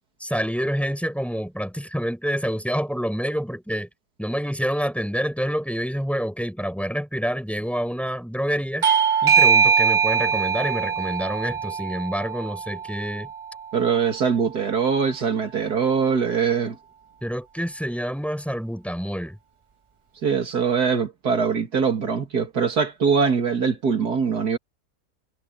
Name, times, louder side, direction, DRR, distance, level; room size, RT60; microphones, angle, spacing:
voice 1, 0.2-3.9 4.2-8.8 9.2-13.3 17.2-19.4, equal, ahead, 6.5 m, -27 dB
Bell / Doorbell, 8.8-14.0, right 6 dB, 40° right, 0.4 m, -22 dB
voice 2, 13.7-16.8 20.2-24.6, right 6 dB, 85° right, 2.9 m, -22 dB
omnidirectional pair, 1.6 m